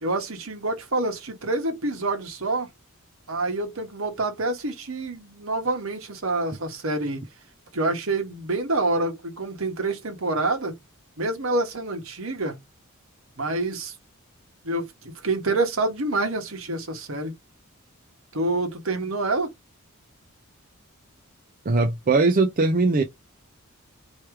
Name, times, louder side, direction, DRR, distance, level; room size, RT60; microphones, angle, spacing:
voice 1, 0.0-2.7 3.3-7.2 7.7-10.7 11.2-12.6 13.4-13.9 14.6-17.3 18.3-19.5, right 2 dB, 65° right, 1.4 m, -27 dB
voice 2, 21.7-23.0, right 3 dB, 40° right, 0.5 m, -20 dB
3.2 x 3.1 x 4.6 m
head